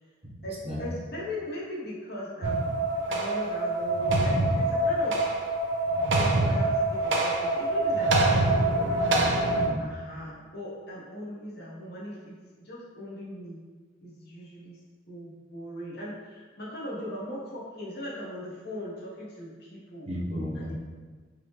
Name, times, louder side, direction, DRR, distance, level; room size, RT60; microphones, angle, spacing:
voice 1, 0.4-2.7 3.1-5.2 6.0-9.0 9.8-13.6 14.0-14.8 15.1-20.1 20.5-20.7, left 1 dB, 60° left, -6 dB, 1.0 m, -39 dB
sound 1, 2.4-9.7, right 2 dB, 80° right, 0.5 m, -25 dB
voice 2, 9.1-10.0 20.1-20.7, equal, 35° right, -6 dB, 0.9 m, -34 dB
3.7 x 3.1 x 3.1 m, 1.4 s
head